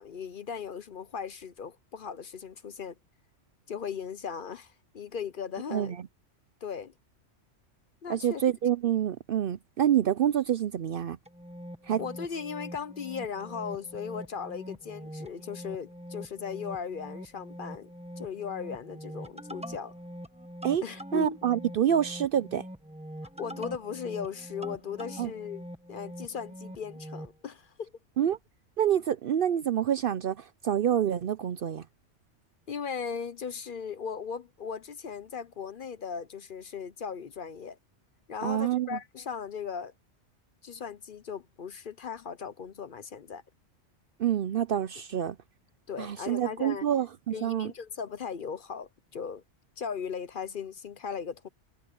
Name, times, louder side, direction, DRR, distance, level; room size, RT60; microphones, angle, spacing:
voice 1, 0.0-3.0 3.7-5.9 6.6-6.9 8.0-8.4 12.0-17.9 18.2-19.9 20.8-21.4 23.4-27.9 32.7-37.8 38.3-39.9 40.6-43.4 45.9-46.9 47.3-49.4 49.8-51.5, left 6 dB, 50° left, 0.8 m, -37 dB
voice 2, 8.1-11.2 11.9-12.0 20.6-20.8 21.1-22.7 25.2-25.3 28.2-28.4 28.8-31.8 38.4-39.0 44.2-45.4 46.0-47.7, right 10 dB, 60° right, 0.6 m, -27 dB
sound 1, 11.3-27.4, equal, 5° right, 1.4 m, -44 dB
omnidirectional pair, 1.2 m